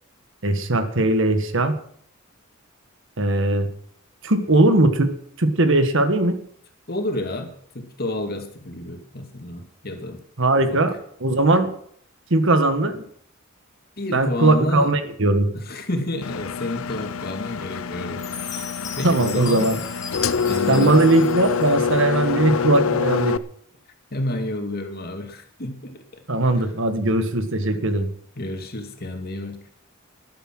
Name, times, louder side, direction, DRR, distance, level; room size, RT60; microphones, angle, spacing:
voice 1, 0.4-1.8 3.2-3.7 4.2-5.1 5.4-6.4 10.4-10.9 11.2-11.7 12.3-13.0 14.1-15.5 19.0-19.8 20.7-23.4 26.3-28.1, right 2 dB, 65° right, 9 dB, 1.6 m, -19 dB
voice 2, 6.9-7.5 7.7-10.2 10.7-10.8 14.0-14.9 15.5-18.7 19.0-19.7 20.4-21.0 22.2-22.4 24.1-26.2 28.4-29.6, left 1 dB, 50° left, 4 dB, 2.4 m, -30 dB
Engine, 16.2-23.4, left 6 dB, 75° left, 0.6 m, -26 dB
Chime, 18.2-22.2, left 5 dB, 15° left, 4.5 m, -37 dB
14.0 x 11.5 x 6.2 m, 0.64 s
head